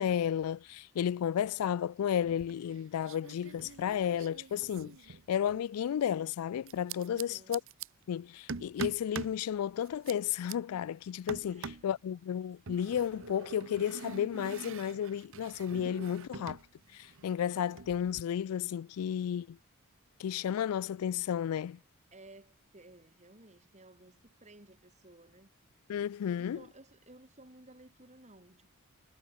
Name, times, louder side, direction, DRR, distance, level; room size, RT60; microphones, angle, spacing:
voice 1, 0.0-5.0 5.3-7.6 8.1-16.6 16.9-19.6 20.2-21.8 25.9-26.6, left 9 dB, 80° left, 0.3 m, -33 dB
sound 1, 2.2-2.8 3.0-5.7 6.7-7.9 8.5-9.4 9.8-10.5 11.3-11.9 12.7-16.7 16.9-18.2, right 5 dB, 60° right, 0.9 m, -44 dB
voice 2, 7.1-7.6 11.4-11.9 22.1-25.5 26.2-28.7, right 2 dB, 30° right, 4.9 m, -56 dB
head